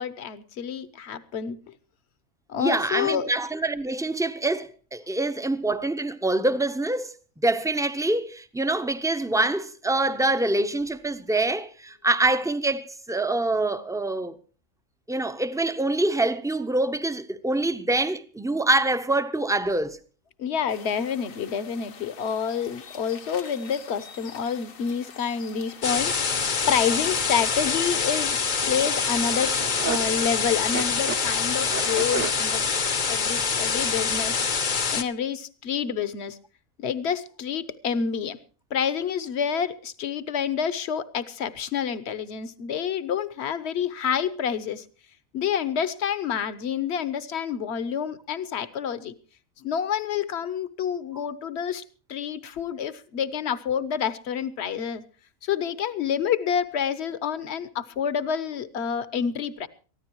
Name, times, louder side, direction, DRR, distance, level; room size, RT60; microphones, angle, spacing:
voice 1, 0.0-1.7 2.5-3.3 20.4-26.2 26.7-28.4 28.7-32.7 33.1-34.4 34.9-36.4 36.8-38.4 38.7-44.8 45.3-49.1 49.6-51.8 52.1-55.0 55.4-59.7, left 7 dB, 55° left, 1.1 m, -28 dB
voice 2, 2.6-7.1 7.4-14.4 15.1-20.0, right 2 dB, 5° right, 0.5 m, -25 dB
sound 1, 20.7-27.5, left 6 dB, 75° left, 1.6 m, -46 dB
sound 2, 25.8-35.0, left 5 dB, 40° left, 0.9 m, -25 dB
sound 3, 28.0-28.1 28.6-32.9, right 7 dB, 60° right, 1.4 m, -35 dB
23.0 x 14.5 x 3.0 m
omnidirectional pair, 1.4 m